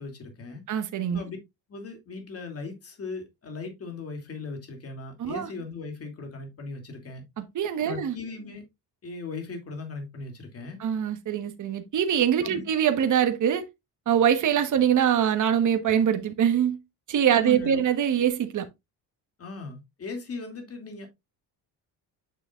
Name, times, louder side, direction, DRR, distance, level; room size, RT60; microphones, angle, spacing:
voice 1, 0.0-0.6 1.1-1.4 1.7-7.2 7.8-8.6 9.0-10.8 12.4-12.6 17.3-17.8 19.4-21.1, left 4 dB, 35° left, 2.7 m, -38 dB
voice 2, 0.7-1.2 5.2-5.5 7.5-8.1 10.8-13.6 14.1-16.8 17.1-18.6, right 9 dB, 50° right, 1.3 m, -23 dB
9.0 x 6.3 x 2.4 m
cardioid pair, 135°, 39 cm